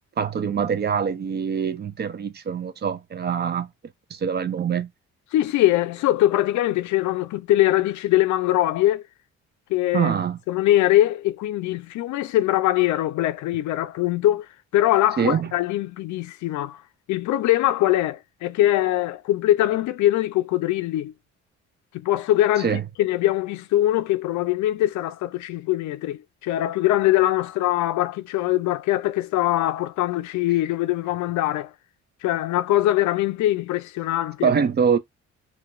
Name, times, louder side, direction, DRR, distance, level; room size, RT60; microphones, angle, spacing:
voice 1, 0.2-3.7 4.1-4.9 9.9-10.4 15.2-15.5 22.6-22.8 34.4-35.0, right 7 dB, 35° right, 0.5 m, -24 dB
voice 2, 5.3-9.0 9.7-10.1 10.5-14.5 14.7-16.8 17.1-21.1 21.9-31.7 32.2-34.5, left 14 dB, 75° left, 0.5 m, -22 dB
2.8 x 2.3 x 2.4 m
cardioid pair, 80°, 30 cm